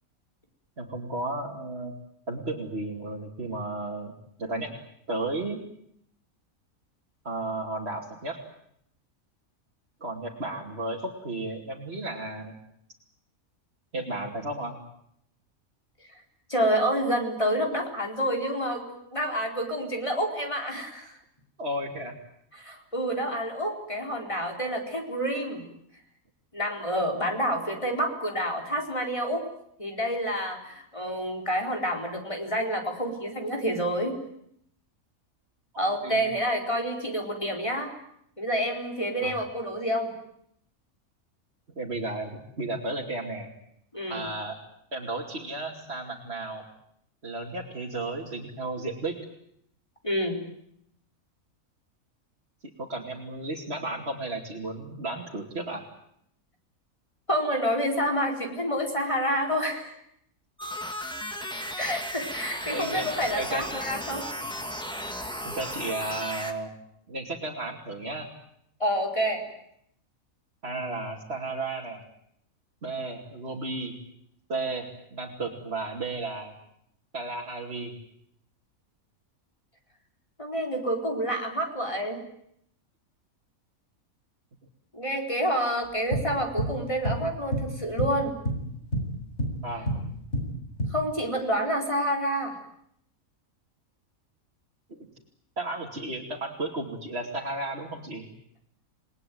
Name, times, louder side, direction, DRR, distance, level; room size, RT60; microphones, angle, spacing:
voice 1, 0.8-1.9 2.3-4.1 4.4-4.7 5.1-5.6 7.2-8.4 10.0-12.5 13.9-14.8 21.6-22.1 35.8-36.2 39.2-39.4 41.8-43.5 44.1-44.5 44.9-46.6 47.2-49.1 52.8-55.8 62.7-63.8 65.4-66.7 67.1-68.3 70.6-72.0 72.8-73.9 74.5-76.5 77.1-77.9 89.6-90.1 94.9-95.1 95.6-98.3, right 2 dB, 45° right, -2 dB, 3.0 m, -33 dB
voice 2, 16.5-21.1 22.6-25.7 26.5-29.4 29.8-34.1 35.8-37.9 38.4-40.1 43.9-44.3 50.0-50.4 57.3-59.9 61.8-64.3 68.8-69.4 80.4-82.2 84.9-88.4 90.9-92.6, equal, 20° left, 2 dB, 4.4 m, -28 dB
sound 1, 60.6-66.5, equal, 5° left, 2.3 m, -35 dB
sound 2, 86.1-86.8 87.0-87.3 87.5-88.7 88.9-90.1 90.3-90.8, equal, 50° left, 7.5 m, -28 dB
29.5 x 20.0 x 9.4 m, 0.73 s
omnidirectional pair, 1.5 m